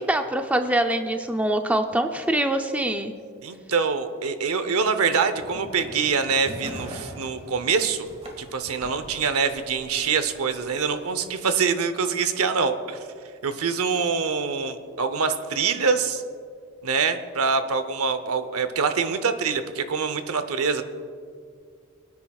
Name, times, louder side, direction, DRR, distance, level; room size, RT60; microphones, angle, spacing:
voice 1, 0.1-3.1, right 1 dB, 5° right, 6 dB, 0.4 m, -24 dB
voice 2, 3.4-8.1 8.4-13.0 13.4-16.2 16.8-20.8, right 5 dB, 85° right, 10 dB, 0.7 m, -25 dB
sound 1, 5.4-11.1, equal, 30° right, 1.8 m, -42 dB
26.0 x 9.6 x 2.3 m, 2.3 s
head